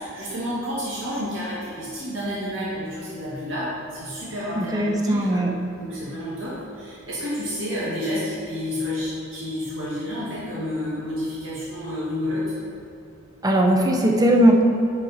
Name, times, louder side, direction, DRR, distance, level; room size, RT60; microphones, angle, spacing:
voice 1, 0.0-5.5 5.8-12.5, left 1 dB, 75° right, -8 dB, 1.7 m, -30 dB
voice 2, 4.6-5.5 13.4-14.6, right 1 dB, 20° right, 1 dB, 0.8 m, -18 dB
10.5 x 5.1 x 4.1 m, 2.6 s
head